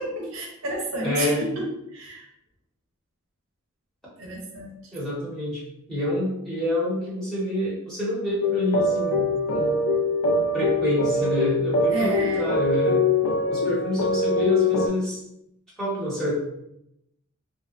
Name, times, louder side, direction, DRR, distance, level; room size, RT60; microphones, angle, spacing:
voice 1, 0.0-2.3 4.2-4.9 11.9-12.5, right 1 dB, 60° right, -1 dB, 0.5 m, -31 dB
voice 2, 1.0-1.4 4.9-5.6 5.9-9.8 10.5-13.0 13.5-15.2 15.8-16.4, equal, 5° left, -8 dB, 0.8 m, -27 dB
sound 1, 8.4-14.9, left 2 dB, 60° left, 0.3 m, -23 dB
2.6 x 2.0 x 2.4 m, 0.81 s
head